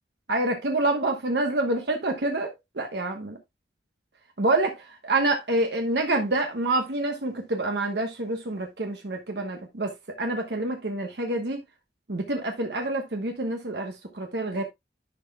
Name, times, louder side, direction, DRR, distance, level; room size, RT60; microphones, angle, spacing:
voice 1, 0.3-3.4 4.4-11.6 12.1-14.6, right 2 dB, 75° right, 1.1 m, -27 dB
10.5 x 5.9 x 2.3 m
head